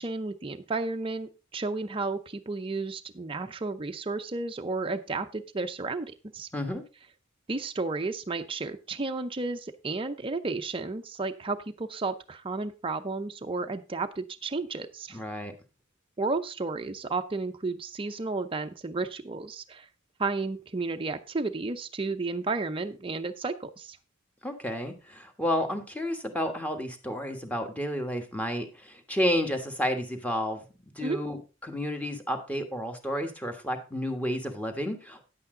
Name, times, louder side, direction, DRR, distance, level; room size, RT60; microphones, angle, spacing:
voice 1, 0.0-6.5 7.5-15.2 16.2-19.9 20.2-24.0 31.0-31.2, right 3 dB, 25° right, 6 dB, 0.6 m, -32 dB
voice 2, 15.1-15.5 24.4-30.6 31.0-35.3, equal, 5° left, 5 dB, 1.4 m, -31 dB
9.9 x 8.4 x 3.8 m, 0.32 s
head